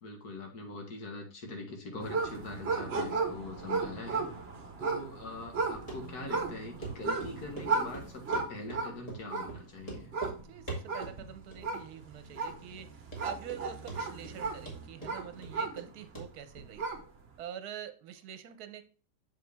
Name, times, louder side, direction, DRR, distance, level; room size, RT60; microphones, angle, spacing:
voice 1, 0.0-4.3 4.8-10.1, left 2 dB, 70° left, 3 dB, 2.0 m, -43 dB
sound 1, 2.0-16.2 16.6-17.2, right 4 dB, 45° right, 1.1 m, -35 dB
Run, 5.9-6.0 6.3-6.4 6.8-6.9 7.2-8.8 9.1-9.2 9.5-9.6 9.8-10.4 10.7-11.2 11.5-12.0 12.2-12.3 12.8-12.9 13.1-13.6 13.9-14.4 14.7-15.9 16.1-16.3 16.6-16.7, right 3 dB, 20° left, 2.1 m, -41 dB
voice 2, 10.4-16.8 17.4-18.8, right 9 dB, 75° right, 10 dB, 1.3 m, -45 dB
6.9 x 4.9 x 3.4 m, 0.36 s
omnidirectional pair, 1.7 m